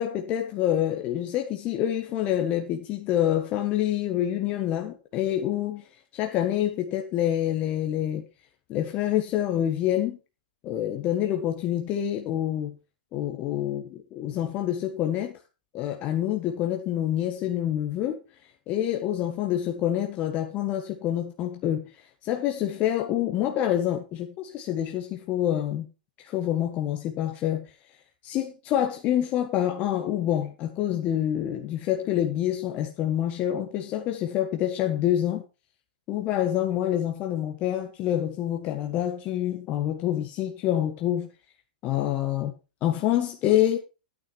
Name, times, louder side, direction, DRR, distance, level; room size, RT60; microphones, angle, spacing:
voice 1, 0.0-5.8 6.1-8.2 8.7-10.2 10.6-12.7 13.1-15.4 15.7-18.2 18.7-21.9 22.2-25.9 26.2-27.6 28.2-35.4 36.1-41.3 41.8-42.5 42.8-43.8, left 11 dB, 35° left, 1.5 m, -27 dB
10.5 x 9.4 x 4.4 m
hypercardioid pair, 135°, 5 cm